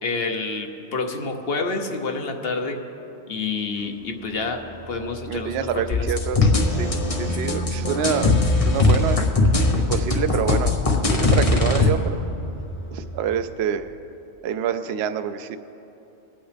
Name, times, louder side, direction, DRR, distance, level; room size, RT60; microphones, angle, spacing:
voice 1, 0.0-2.8 3.3-6.1, left 3 dB, 60° left, 4 dB, 1.1 m, -28 dB
sound 1, 3.8-13.2, left 1 dB, 15° left, 0.4 m, -35 dB
voice 2, 5.3-6.4 6.7-8.4 8.6-9.3 9.8-12.2 12.9-13.9 14.4-15.6, right 8 dB, 70° right, 9 dB, 0.8 m, -27 dB
sound 2, 5.9-11.9, left 2 dB, 35° left, 1.0 m, -20 dB
22.5 x 8.8 x 3.4 m, 2.9 s
omnidirectional pair, 1.2 m